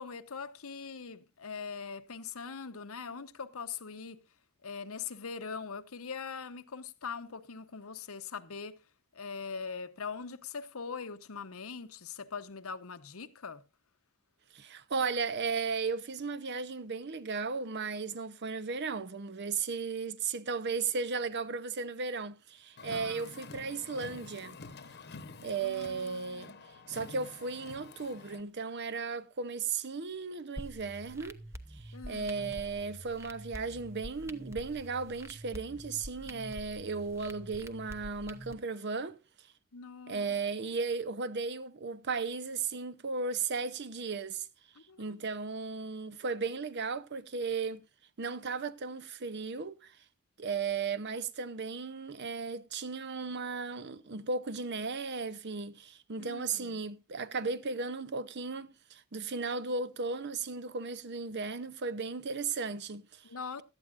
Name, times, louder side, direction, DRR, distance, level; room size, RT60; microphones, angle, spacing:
voice 1, 0.0-4.2 4.6-8.8 9.1-13.6 22.9-23.3 24.9-25.2 25.6-26.6 31.9-32.6 39.7-40.3 44.7-45.1 56.2-56.8 63.2-63.6, left 5 dB, 75° left, 0.9 m, -42 dB
voice 2, 14.5-24.6 25.4-26.6 26.9-31.4 31.7-39.2 40.1-44.5 45.0-47.8 48.2-50.0 50.4-63.2, right 4 dB, 50° right, 0.7 m, -35 dB
Car, 22.8-28.4, left 4 dB, 50° left, 1.1 m, -49 dB
sound 1, 30.6-38.5, right 1 dB, 10° right, 0.8 m, -46 dB
17.0 x 12.5 x 2.5 m
head